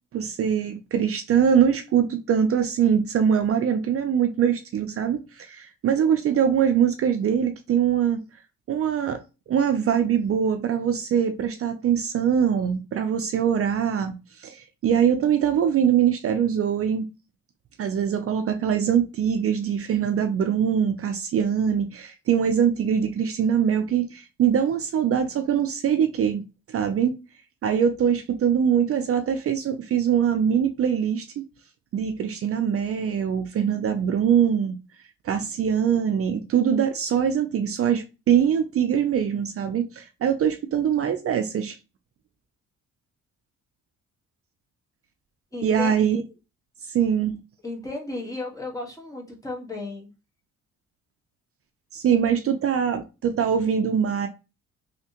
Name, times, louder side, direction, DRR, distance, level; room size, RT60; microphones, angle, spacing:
voice 1, 0.1-8.2 8.7-9.2 9.5-17.1 17.8-26.4 26.7-27.1 27.6-31.5 31.9-34.8 35.2-41.8 45.6-46.2 46.9-47.4 51.9-54.3, right 8 dB, 50° right, 0.5 m, -23 dB
voice 2, 45.5-45.9 47.6-50.1, left 2 dB, 10° left, 1.4 m, -34 dB
3.3 x 2.8 x 2.9 m
cardioid pair, 90°, 30 cm